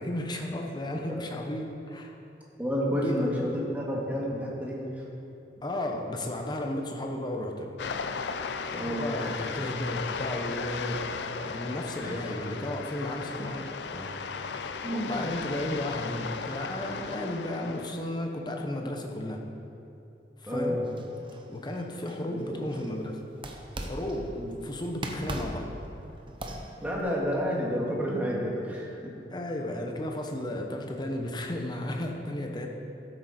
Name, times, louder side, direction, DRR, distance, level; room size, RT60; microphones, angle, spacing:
voice 1, 0.0-2.1 2.9-3.3 5.6-7.8 8.8-11.1 11.4-14.2 14.9-19.4 20.4-20.8 21.5-23.2 23.8-24.3 24.6-25.7 29.3-32.7, left 1 dB, 25° left, 2 dB, 1.0 m, -34 dB
voice 2, 2.6-4.8 8.7-9.5 12.0-12.2 14.8-15.6 20.5-20.9 22.3-22.6 24.4-24.5 26.8-29.1, equal, 10° right, -4 dB, 1.9 m, -30 dB
sound 1, 7.8-18.1, left 5 dB, 70° left, 0.5 m, -36 dB
sound 2, 20.8-23.0 23.4-24.4 24.8-27.0, right 1 dB, 30° right, 0.8 m, -40 dB
13.0 x 7.7 x 4.3 m, 2.9 s
head